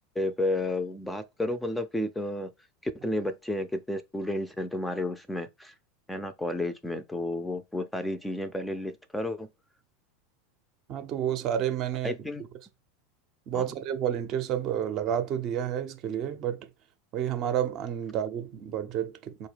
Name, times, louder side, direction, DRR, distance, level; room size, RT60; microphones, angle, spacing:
voice 1, 0.2-2.5 2.8-5.7 6.1-9.5 12.0-12.4 13.5-13.7, left 1 dB, 5° left, 0.4 m, -31 dB
voice 2, 10.9-12.1 13.5-16.7 17.1-19.5, right 10 dB, 45° right, 0.5 m, -30 dB
4.2 x 2.2 x 3.3 m
figure-of-eight pair, 85°, 0 cm